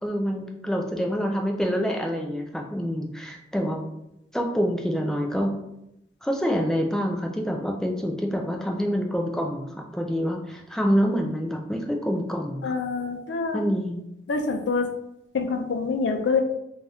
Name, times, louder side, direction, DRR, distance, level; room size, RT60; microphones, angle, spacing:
voice 1, 0.0-3.8 4.3-5.5 6.2-12.7 13.5-14.0, equal, 5° left, 1 dB, 0.3 m, -26 dB
voice 2, 12.6-13.6 14.3-14.9 15.3-16.4, left 4 dB, 85° left, 5 dB, 0.4 m, -26 dB
2.6 x 2.3 x 3.3 m, 0.84 s
head